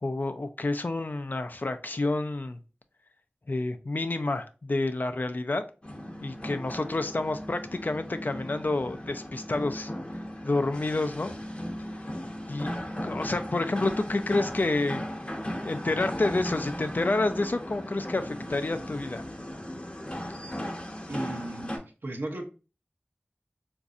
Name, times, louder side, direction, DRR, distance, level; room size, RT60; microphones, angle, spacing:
voice 1, 0.0-2.6 3.5-5.6 6.2-9.9 10.4-11.4 12.5-12.8 13.0-15.1 15.6-19.2, left 2 dB, 55° left, 9 dB, 0.4 m, -29 dB
sound 1, 5.8-21.8, equal, 30° left, 0.7 m, -37 dB
voice 2, 21.1-22.5, right 1 dB, 75° right, 3 dB, 0.8 m, -36 dB
4.0 x 2.6 x 2.3 m, 0.33 s
wide cardioid pair, 55°, 4 cm